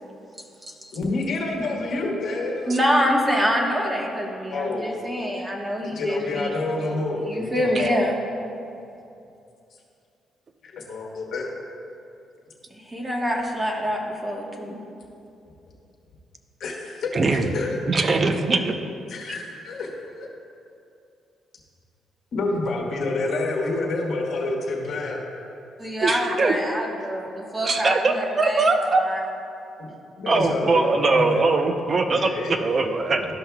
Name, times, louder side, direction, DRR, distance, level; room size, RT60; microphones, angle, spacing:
voice 1, 0.9-2.8 4.5-4.9 5.8-8.1 10.6-11.5 16.6-17.7 19.1-19.9 20.2-20.3 22.3-25.2 29.8-29.9 30.2-31.4 32.1-32.6 33.1-33.2, left 2 dB, 65° left, -1 dB, 1.3 m, -28 dB
voice 2, 2.7-6.5 7.2-8.2 12.7-14.8 25.8-29.2, equal, 15° right, -1 dB, 1.2 m, -26 dB
voice 3, 17.1-17.5 17.9-18.8 26.0-26.6 27.6-29.0 30.3-33.3, right 3 dB, 40° right, 6 dB, 0.6 m, -22 dB
13.0 x 5.5 x 2.3 m, 2.6 s
cardioid pair, 90°, 0 cm